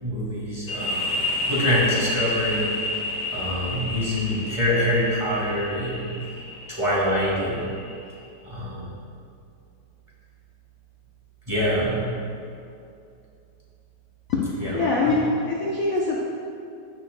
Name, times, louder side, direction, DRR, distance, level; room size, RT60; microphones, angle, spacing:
voice 1, 0.0-1.1 1.5-2.7 3.3-6.1 6.7-7.7 8.4-8.8 11.5-12.2 14.6-14.7 15.1-15.2, equal, 20° right, -7 dB, 2.1 m, -25 dB
sound 1, 0.7-8.1, left 2 dB, 75° left, 1.8 m, -30 dB
voice 2, 14.3-16.2, left 3 dB, 60° left, -4 dB, 1.1 m, -24 dB
15.5 x 6.4 x 2.3 m, 2.5 s
omnidirectional pair, 1.9 m